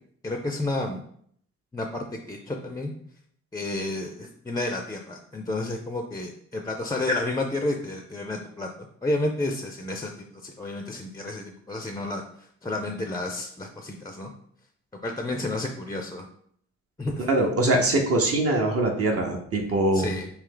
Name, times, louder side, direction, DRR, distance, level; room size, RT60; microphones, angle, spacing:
voice 1, 0.2-1.0 1.7-2.9 3.5-8.7 9.0-12.2 12.6-14.3 15.0-16.3 17.0-17.3 19.9-20.3, left 2 dB, 10° left, 4 dB, 0.4 m, -31 dB
voice 2, 17.2-20.1, right 2 dB, 50° right, 1 dB, 0.8 m, -23 dB
3.2 x 2.8 x 3.8 m, 0.65 s
cardioid pair, 90°, 30 cm